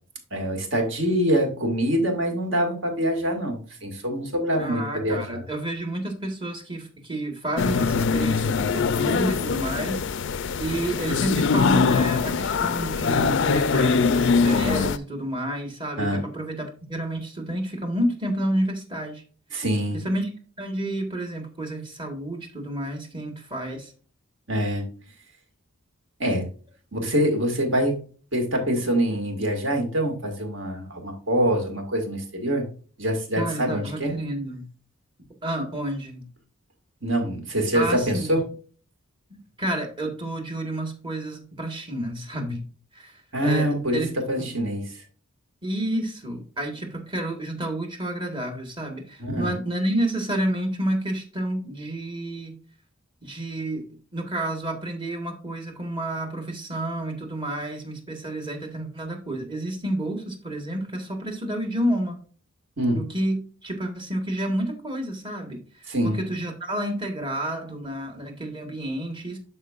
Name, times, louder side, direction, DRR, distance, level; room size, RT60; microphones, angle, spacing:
voice 1, 0.3-5.4 16.0-16.2 19.5-20.0 24.5-24.8 26.2-26.5 26.9-28.0 28.3-32.7 33.0-34.1 37.0-38.4 43.3-44.9 49.2-49.5 62.8-63.0 65.9-66.2, equal, 60° right, 3 dB, 2.1 m, -25 dB
voice 2, 4.6-10.0 10.3-19.2 19.9-23.9 33.3-34.6 35.4-36.2 37.7-38.3 39.3-42.6 42.9-43.7 43.9-44.1 44.4-44.5 45.6-52.6 53.2-53.8 54.1-62.2 62.9-63.3 63.6-69.4, right 1 dB, 25° right, 4 dB, 1.5 m, -30 dB
sound 1, 7.6-15.0, left 5 dB, 55° left, 0.4 m, -22 dB
11.5 x 4.4 x 2.5 m, 0.41 s
head